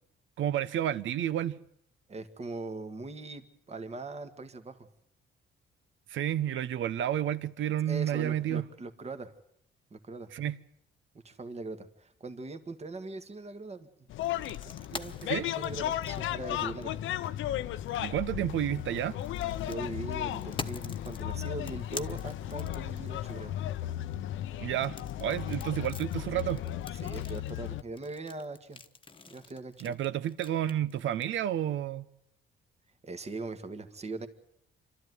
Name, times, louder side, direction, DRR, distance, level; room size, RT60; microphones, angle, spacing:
voice 1, 0.4-1.6 6.1-8.6 10.3-10.6 15.3-15.5 18.0-19.1 24.6-26.6 29.8-32.0, right 11 dB, 75° right, 0.9 m, -30 dB
voice 2, 2.1-4.9 7.9-9.3 9.9-10.3 11.2-13.9 14.4-16.9 19.6-23.6 25.6-25.7 27.0-28.8 29.3-30.0 33.0-34.3, right 3 dB, 30° right, 1.8 m, -41 dB
sound 1, 14.1-27.8, left 12 dB, 80° left, 0.8 m, -35 dB
sound 2, 14.2-17.1 18.6-23.3 24.7-31.2, left 4 dB, 25° left, 1.2 m, -45 dB
26.5 x 12.5 x 9.5 m
cardioid pair, 90°, 20 cm